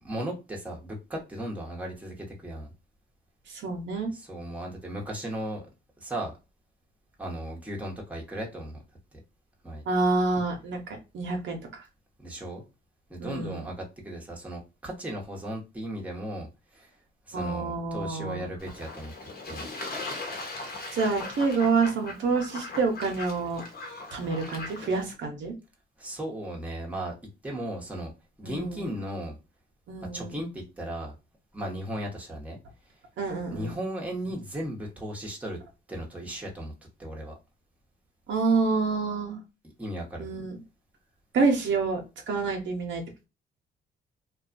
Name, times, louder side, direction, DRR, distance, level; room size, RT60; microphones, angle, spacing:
voice 1, 0.0-2.7 4.1-5.7 6.0-6.3 7.2-8.8 9.1-9.2 9.6-9.8 12.2-12.6 13.1-17.0 17.3-19.1 19.5-19.7 26.0-27.1 27.4-28.1 28.4-29.4 30.1-31.1 31.5-32.6 33.5-35.6 35.9-37.4 39.8-40.3, right 1 dB, 5° right, -2 dB, 1.0 m, -36 dB
voice 2, 3.5-4.1 9.9-11.8 13.2-13.6 17.3-18.5 20.9-23.6 24.1-25.5 28.4-28.9 29.9-30.4 33.2-33.8 38.3-39.4 40.2-40.6 41.3-42.0 42.3-43.2, right 4 dB, 70° right, 2 dB, 0.9 m, -28 dB
Fowl / Bird / Water, 18.6-25.1, left 2 dB, 50° left, 1.0 m, -39 dB
2.7 x 2.3 x 2.5 m, 0.27 s
cardioid pair, 90°, 20 cm